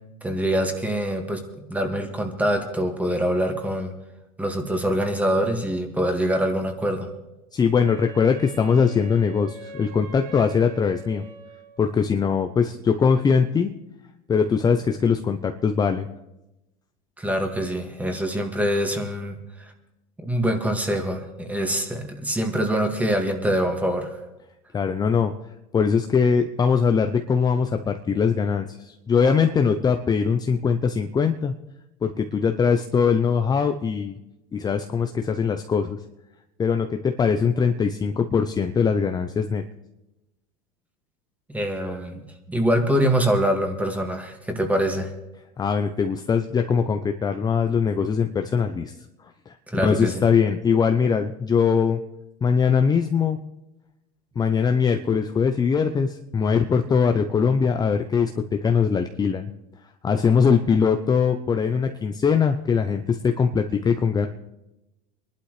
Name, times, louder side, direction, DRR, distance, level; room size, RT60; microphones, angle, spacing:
voice 1, 0.2-1.4 1.7-3.9 4.4-7.1 17.2-19.7 20.2-24.2 41.5-45.1 49.7-50.3, equal, 5° right, 4 dB, 2.1 m, -24 dB
voice 2, 7.5-11.2 11.8-13.7 14.3-16.1 24.7-25.3 25.7-31.5 32.0-34.2 34.5-36.0 36.6-39.6 45.6-48.9 49.5-52.0 52.4-53.4 54.4-59.5 60.0-64.3, left 6 dB, 20° left, 6 dB, 0.7 m, -21 dB
Wind instrument woodwind instrument, 7.8-11.9, right 2 dB, 75° right, 1.5 m, -43 dB
24.0 x 11.5 x 3.3 m, 0.95 s
supercardioid pair, 115°, 20 cm